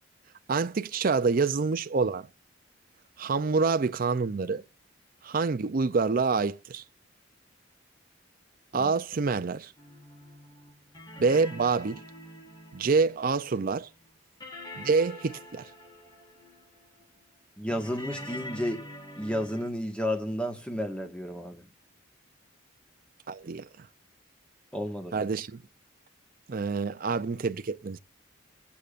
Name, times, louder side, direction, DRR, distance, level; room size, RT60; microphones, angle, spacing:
voice 1, 0.5-2.3 3.2-4.6 5.2-6.8 8.7-9.7 11.2-12.0 12.7-13.9 14.8-15.7 23.3-23.9 25.1-25.6 26.5-28.0, right 4 dB, 45° right, 0.5 m, -27 dB
sound 1, 9.8-14.1 14.4-17.2 17.7-19.7, left 1 dB, 20° left, 1.9 m, -45 dB
voice 2, 17.6-18.8 19.2-21.6 24.7-25.2, equal, 5° left, 1.5 m, -32 dB
17.0 x 8.6 x 2.5 m
head